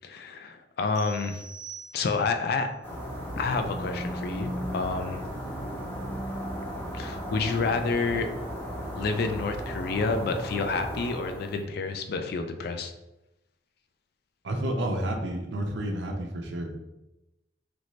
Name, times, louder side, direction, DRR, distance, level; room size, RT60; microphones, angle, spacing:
voice 1, 0.0-1.4 1.9-2.7 3.4-5.2 6.9-8.3 8.9-12.9, left 4 dB, 60° left, 7 dB, 0.4 m, -29 dB
sound 1, 1.0-2.5, right 6 dB, 20° right, 0.5 m, -45 dB
sound 2, 2.8-11.6, equal, 10° left, 1.0 m, -35 dB
voice 2, 14.4-16.7, right 1 dB, 90° right, 1 dB, 0.6 m, -30 dB
3.1 x 2.6 x 3.1 m, 0.93 s
head